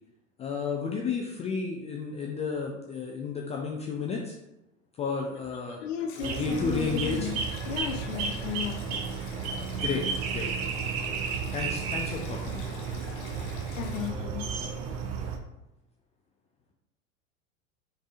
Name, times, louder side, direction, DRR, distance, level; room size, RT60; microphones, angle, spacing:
voice 1, 0.4-4.4 5.0-5.8 6.2-7.3 9.8-10.5 11.5-12.6, left 5 dB, 20° left, 0 dB, 0.3 m, -32 dB
voice 2, 5.7-9.0 13.8-14.5, left 9 dB, 65° left, 6 dB, 0.6 m, -35 dB
Stream, 6.1-14.1, left 4 dB, 45° left, 1.2 m, -48 dB
sound 1, 6.2-15.4, right 5 dB, 50° right, 0.8 m, -33 dB
5.2 x 3.3 x 2.5 m, 0.90 s
figure-of-eight pair, 80°, 40 cm